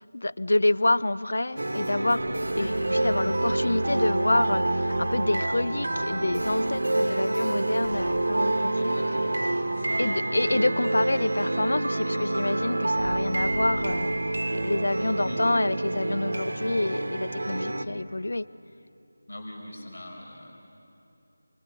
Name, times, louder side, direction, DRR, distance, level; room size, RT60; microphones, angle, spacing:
voice 1, 0.0-8.9 10.0-18.5, left 2 dB, 80° left, 18 dB, 0.6 m, -27 dB
sound 1, 1.6-17.8, right 2 dB, 90° right, 1.5 m, -27 dB
sound 2, 2.2-10.6 11.0-11.1 11.4-15.6, right 1 dB, 45° right, 2.6 m, -44 dB
voice 2, 8.7-9.4 9.7-10.6 15.2-15.4 19.3-20.6, left 1 dB, 60° left, 0 dB, 5.1 m, -41 dB
29.0 x 22.0 x 6.8 m, 2.9 s
figure-of-eight pair, 180°, 0 cm